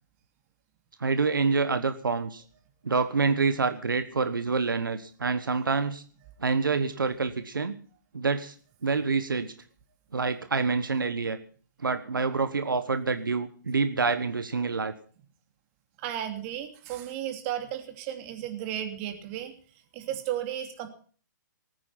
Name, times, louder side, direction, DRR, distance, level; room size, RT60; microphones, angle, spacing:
voice 1, 1.0-2.4 2.8-6.0 6.4-7.8 8.1-8.5 8.8-9.5 10.1-11.4 11.8-14.9, right 4 dB, 90° right, 10 dB, 1.2 m, -27 dB
voice 2, 16.0-19.5 19.9-20.9, right 11 dB, 40° right, 6 dB, 2.9 m, -34 dB
19.0 x 9.5 x 5.8 m, 0.44 s
hypercardioid pair, 130°, 11 cm